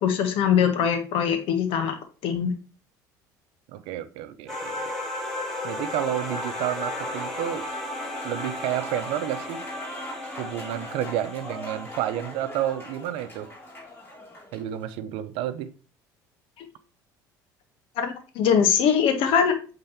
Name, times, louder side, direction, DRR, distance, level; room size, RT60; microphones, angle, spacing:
voice 1, 0.0-1.9 2.2-2.5 16.6-16.7 18.0-19.5, left 7 dB, 60° left, 1.5 m, -22 dB
voice 2, 3.7-4.8 5.6-7.7 8.2-9.7 10.4-13.5 14.5-15.7, right 12 dB, 65° right, 0.7 m, -30 dB
sound 1, 4.5-13.1, left 1 dB, 5° left, 2.8 m, -34 dB
Applause / Crowd, 5.9-14.7, equal, 20° left, 3.1 m, -42 dB
8.6 x 3.9 x 4.4 m
hypercardioid pair, 65°, 10 cm